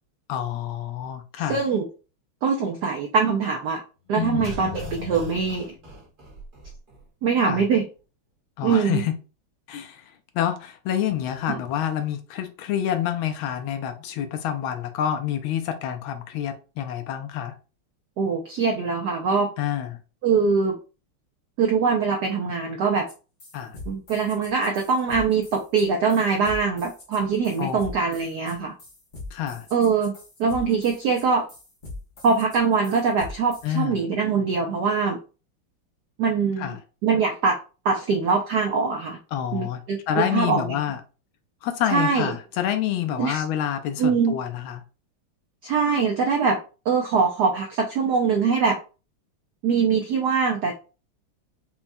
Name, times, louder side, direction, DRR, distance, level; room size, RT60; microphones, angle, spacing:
voice 1, 0.3-1.6 4.2-4.5 7.4-7.7 8.6-9.1 9.7-10.0 10.3-17.5 19.6-20.0 23.5-23.8 27.6-27.8 29.3-29.7 33.6-34.0 36.6-36.8 39.3-41.0 41.6-44.8, left 10 dB, 75° left, 1.3 m, -27 dB
voice 2, 1.5-1.9 2.4-3.8 4.1-5.7 7.2-7.9 8.6-9.0 11.5-11.6 18.2-19.5 20.2-20.8 21.6-23.1 23.9-28.7 29.7-30.1 30.4-31.4 32.2-35.2 36.2-36.8 37.0-37.6 37.8-39.2 39.5-40.8 41.9-42.3 43.2-43.4 44.0-44.4 45.6-46.6 46.9-48.8 49.6-50.7, right 5 dB, 80° right, 0.9 m, -23 dB
sound 1, 4.1-7.0 7.3-7.4, left 4 dB, 30° right, 1.0 m, -37 dB
sound 2, 23.1-23.2 23.4-33.7, left 2 dB, 40° left, 0.7 m, -41 dB
5.4 x 2.3 x 2.6 m
omnidirectional pair, 2.4 m